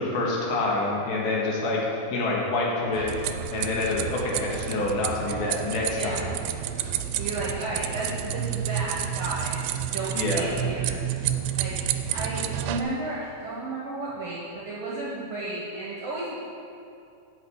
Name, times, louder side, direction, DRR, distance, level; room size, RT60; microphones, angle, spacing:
voice 1, 0.0-3.1 3.5-6.2 10.1-10.4, left 2 dB, 75° left, -3 dB, 3.3 m, -27 dB
sound 1, 2.9-12.8, right 10 dB, 80° right, 2.3 m, -30 dB
voice 2, 5.9-6.3 7.1-11.0 11.5-11.8 12.1-16.3, right 2 dB, 60° right, -6 dB, 1.7 m, -33 dB
9.0 x 5.6 x 8.2 m, 2.6 s
omnidirectional pair, 4.5 m